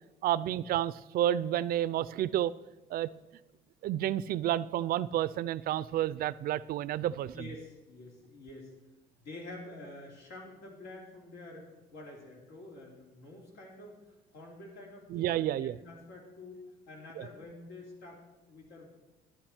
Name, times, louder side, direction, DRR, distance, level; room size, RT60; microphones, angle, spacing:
voice 1, 0.2-2.5 2.9-3.1 3.8-7.3 15.1-15.8 17.2-17.3, right 12 dB, 60° right, 19 dB, 0.4 m, -30 dB
voice 2, 7.3-8.7 9.2-14.0 14.3-18.9, left 2 dB, 90° left, 0 dB, 3.0 m, -48 dB
11.5 x 11.0 x 4.4 m, 1.0 s
cardioid pair, 110°, 17 cm